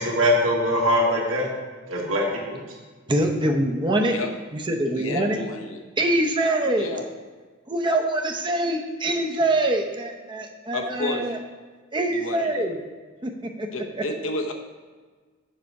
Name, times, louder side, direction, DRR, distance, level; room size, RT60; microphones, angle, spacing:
voice 1, 0.0-1.5 1.9-2.6, equal, 80° right, -3 dB, 2.0 m, -22 dB
voice 2, 3.1-4.1 4.5-5.5 6.0-7.0 7.7-11.4 11.9-12.8 13.2-13.7 14.0-14.1, right 1 dB, 25° right, 2 dB, 0.7 m, -24 dB
voice 3, 4.9-5.8 6.8-7.0 10.7-11.2 12.1-12.6 13.7-14.5, left 2 dB, 70° left, 3 dB, 0.9 m, -30 dB
7.6 x 5.6 x 4.7 m, 1.4 s
head